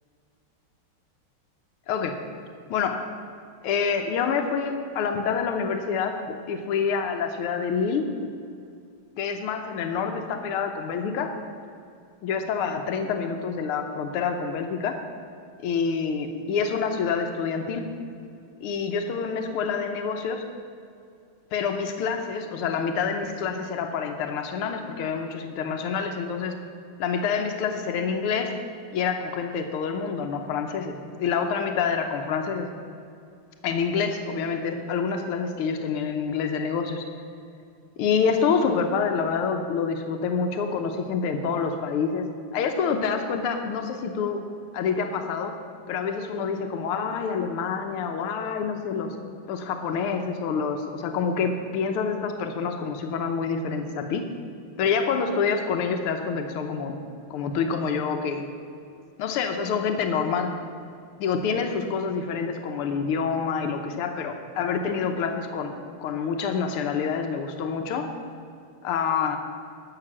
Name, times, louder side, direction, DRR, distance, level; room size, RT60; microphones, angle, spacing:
voice 1, 1.9-2.2 2.7-3.1 3.6-8.0 9.2-11.3 12.2-15.0 15.6-17.9 18.6-20.4 21.5-26.5 27.0-28.5 28.9-32.7 33.6-37.0 38.0-42.3 42.5-44.4 44.7-45.6 45.9-49.2 49.5-54.2 54.8-56.9 57.3-58.4 59.2-60.5 61.2-68.1 68.8-69.4, left 6 dB, 90° left, 5 dB, 1.7 m, -27 dB
11.5 x 6.6 x 7.3 m, 2.5 s
omnidirectional pair, 2.4 m